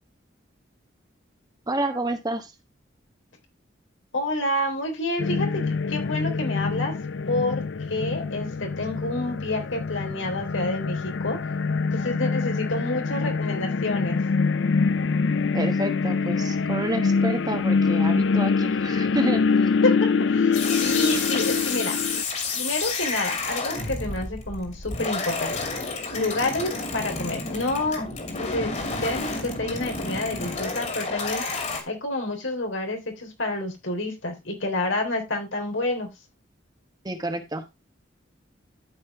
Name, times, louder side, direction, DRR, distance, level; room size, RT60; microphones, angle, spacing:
voice 1, 1.7-2.5 15.5-19.4 37.0-37.6, right 1 dB, 20° right, 7 dB, 1.1 m, -29 dB
voice 2, 4.1-5.6 5.9-6.9 7.3-11.4 11.9-14.2 19.8-19.9 20.3-22.0 22.5-25.6 26.1-28.0 28.4-28.7 29.0-31.4 31.9-36.1, left 2 dB, 85° left, 3 dB, 3.5 m, -28 dB
sound 1, 5.2-22.2, left 4 dB, 70° left, 0.5 m, -25 dB
sound 2, 20.5-31.8, left 3 dB, 35° left, 2.5 m, -30 dB
13.0 x 5.4 x 3.5 m, 0.22 s
head